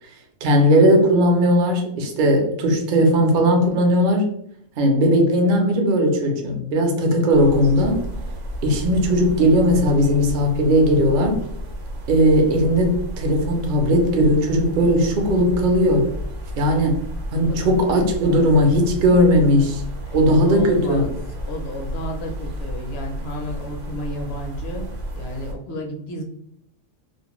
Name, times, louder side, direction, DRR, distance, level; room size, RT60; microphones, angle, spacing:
voice 1, 0.4-4.3 4.8-8.0 8.6-11.4 12.1-16.0 16.6-16.9 17.3-19.8 20.1-21.0, equal, 55° right, 2 dB, 0.5 m, -17 dB
sound 1, 7.3-25.5, equal, 70° right, 0.9 m, -32 dB
voice 2, 20.1-21.1 21.4-26.2, equal, 60° left, 1 dB, 0.8 m, -32 dB
2.5 x 2.1 x 2.9 m, 0.73 s
omnidirectional pair, 1.3 m